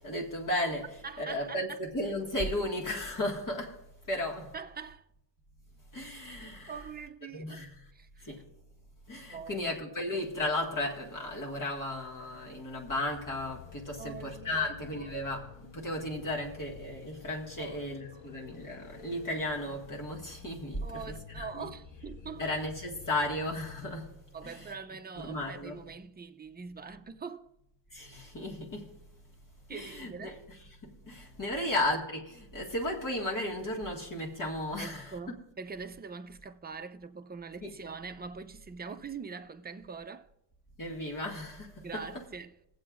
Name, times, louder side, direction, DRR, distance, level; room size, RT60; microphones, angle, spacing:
voice 1, 0.0-0.9 1.2-3.8 4.1-4.5 5.9-6.7 7.3-7.7 8.2-8.4 9.1-21.7 22.4-24.1 24.4-24.7 25.2-25.8 27.9-28.9 29.7-30.4 30.8-35.4 37.6-37.7 40.8-42.0, left 1 dB, 45° left, 1.8 m, -35 dB
voice 2, 1.0-1.8 4.5-5.0 6.7-7.7 7.9-8.3 9.3-9.7 14.0-15.1 17.6-17.9 18.1-18.3 20.8-22.5 24.3-27.5 29.7-30.4 31.5-31.7 34.8-40.3 41.8-42.5, right 5 dB, 20° right, 0.5 m, -43 dB
sound 1, 13.1-24.3, left 9 dB, 85° left, 0.6 m, -51 dB
21.0 x 7.8 x 2.5 m
wide cardioid pair, 120°, 43 cm